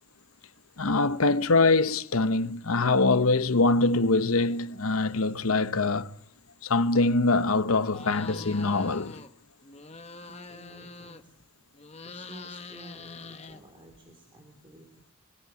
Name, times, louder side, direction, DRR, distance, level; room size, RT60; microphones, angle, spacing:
voice 1, 0.8-6.1 6.6-9.2, left 3 dB, 90° left, 1.0 m, -24 dB
sound 1, 7.9-9.3 9.6-11.4 11.7-14.0, left 3 dB, 30° left, 1.3 m, -44 dB
voice 2, 10.3-11.3 12.0-15.1, right 1 dB, 25° right, 3.4 m, -52 dB
26.0 x 16.5 x 9.5 m
head